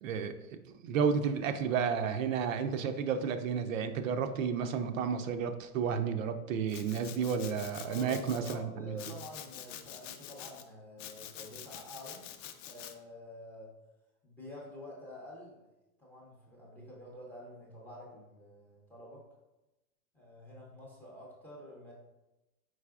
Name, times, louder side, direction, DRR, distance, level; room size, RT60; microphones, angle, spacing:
voice 1, 0.0-9.0, right 6 dB, 60° right, 8 dB, 0.5 m, -32 dB
Domestic sounds home sounds, 6.7-8.6 9.0-10.6 11.0-12.9, left 10 dB, 55° left, 0.5 m, -47 dB
voice 2, 7.2-7.6 7.9-12.3 12.6-13.7 14.2-15.7 16.0-19.2 20.1-21.9, left 1 dB, 5° left, -4 dB, 0.5 m, -48 dB
4.7 x 4.1 x 2.3 m, 0.99 s
hypercardioid pair, 135°, 45 cm